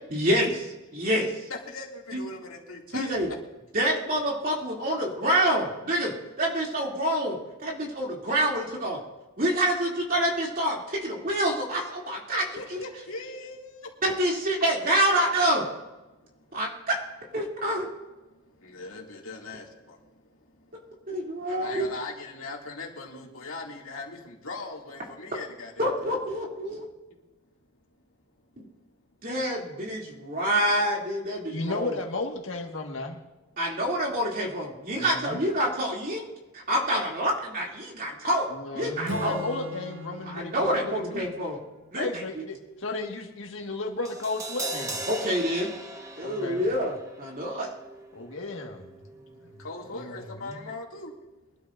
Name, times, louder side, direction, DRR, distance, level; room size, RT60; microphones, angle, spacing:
voice 1, 0.1-1.5 2.1-2.2 2.9-3.3 3.7-9.0 9.4-12.4 12.7-12.8 14.0-15.6 16.5-17.0 17.3-17.9 21.1-21.9 25.8-26.8 28.6-28.7 29.2-32.0 33.6-38.5 38.7-39.4 40.3-41.6 41.9-42.2 45.1-45.7 46.2-47.7, right 1 dB, 45° right, -2 dB, 2.8 m, -27 dB
voice 2, 1.5-3.4 12.3-13.9 18.6-20.0 21.6-26.3 49.6-51.1, left 3 dB, 90° left, -1 dB, 2.4 m, -39 dB
voice 3, 31.5-33.2 34.9-35.4 38.5-41.3 42.0-45.0 46.2-46.7 48.1-49.6 49.9-50.7, left 3 dB, 70° left, 2 dB, 1.7 m, -34 dB
Acoustic guitar / Strum, 39.1-42.5, right 1 dB, 65° right, 1.0 m, -40 dB
Crash cymbal, 44.1-50.2 50.5-50.6, right 2 dB, 15° right, 1.0 m, -40 dB
23.5 x 12.0 x 2.6 m, 1.1 s
head